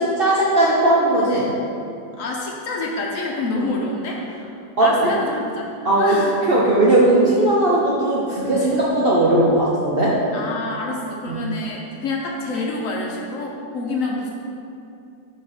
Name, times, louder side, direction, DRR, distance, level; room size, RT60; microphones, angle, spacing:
voice 1, 0.0-1.5 3.5-3.6 4.8-4.9 5.8-6.2 6.5-10.1 11.3-11.4, right 1 dB, 55° right, -6 dB, 0.6 m, -17 dB
voice 2, 2.2-4.2 4.8-5.7 6.0-6.4 10.3-14.3, left 2 dB, 65° left, -1 dB, 1.0 m, -27 dB
4.9 x 4.0 x 5.5 m, 2.6 s
omnidirectional pair, 1.7 m